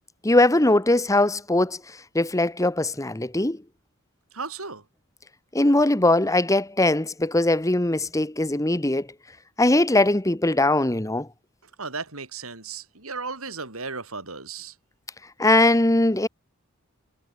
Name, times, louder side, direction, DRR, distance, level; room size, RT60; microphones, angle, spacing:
voice 1, 0.2-1.8 2.1-3.6 5.5-9.1 9.6-11.3 15.4-16.3, left 2 dB, 15° left, 1.2 m, -20 dB
voice 2, 4.3-4.8 11.8-14.7, right 4 dB, 75° right, 7.1 m, -35 dB
head